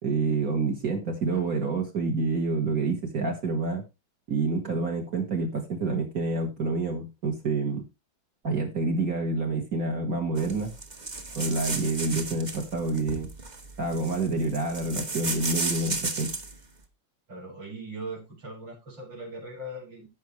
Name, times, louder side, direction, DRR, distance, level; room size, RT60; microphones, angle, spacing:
voice 1, 0.0-3.8 4.3-7.9 8.4-10.7 11.4-13.3 13.8-16.3, right 3 dB, 50° right, 0 dB, 2.1 m, -28 dB
sound 1, 10.4-16.6, right 3 dB, 25° right, 1.1 m, -34 dB
voice 2, 17.3-20.1, right 1 dB, 80° right, -5 dB, 5.8 m, -39 dB
15.5 x 5.6 x 3.2 m, 0.25 s
omnidirectional pair, 2.0 m